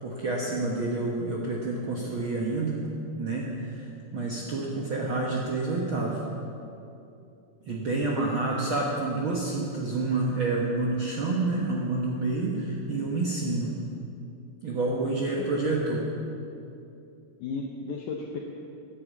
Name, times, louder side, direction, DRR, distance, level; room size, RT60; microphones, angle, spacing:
voice 1, 0.0-2.8 3.2-6.2 7.7-13.7 14.6-16.1, right 3 dB, 75° right, -3 dB, 1.1 m, -28 dB
voice 2, 8.1-8.6 12.7-13.1 15.4-15.6 17.4-18.4, left 4 dB, 70° left, 0 dB, 2.1 m, -36 dB
10.5 x 9.7 x 8.2 m, 2.7 s
omnidirectional pair, 4.2 m